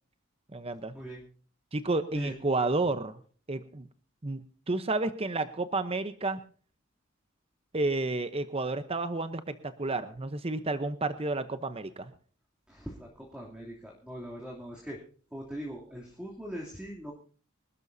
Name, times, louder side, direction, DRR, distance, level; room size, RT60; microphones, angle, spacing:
voice 1, 0.5-0.9 1.7-3.2 3.5-3.9 4.2-4.4 4.7-6.4 7.7-12.1, right 2 dB, 30° right, 11 dB, 0.8 m, -31 dB
voice 2, 12.7-15.0 15.3-17.1, right 1 dB, 5° right, -3 dB, 2.9 m, -41 dB
25.5 x 12.5 x 2.7 m, 0.42 s
head